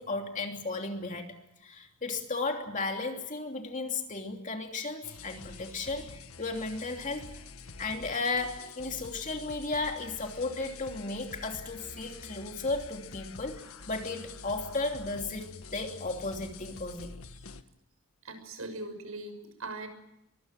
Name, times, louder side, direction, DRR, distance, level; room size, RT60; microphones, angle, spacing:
voice 1, 0.0-1.4 1.6-7.3 7.8-17.2, left 3 dB, 35° left, 3 dB, 3.0 m, -34 dB
sound 1, 5.0-17.6, left 4 dB, 80° left, 1.5 m, -47 dB
voice 2, 18.2-19.9, right 2 dB, 80° right, 9 dB, 6.4 m, -40 dB
23.5 x 23.5 x 7.6 m, 0.83 s
head